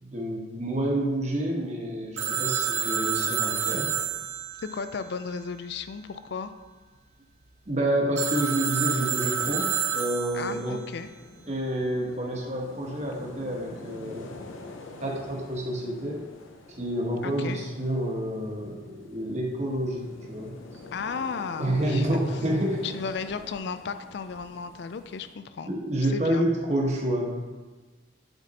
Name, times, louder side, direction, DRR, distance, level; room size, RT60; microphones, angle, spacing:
voice 1, 0.0-3.9 7.7-10.8 11.5-14.4 15.0-16.2 16.8-20.5 21.6-22.9 25.7-27.3, right 1 dB, 35° right, -1 dB, 1.1 m, -28 dB
Telephone, 2.2-5.8 8.2-10.7, right 8 dB, 70° right, 0.8 m, -29 dB
voice 2, 4.6-6.5 10.3-11.1 17.2-17.6 20.9-22.1 22.8-25.7 26.0-26.4, left 5 dB, 60° left, 11 dB, 0.4 m, -34 dB
sound 1, 10.9-25.4, left 2 dB, 90° left, 0.7 m, -47 dB
8.0 x 4.2 x 4.0 m, 1.3 s
head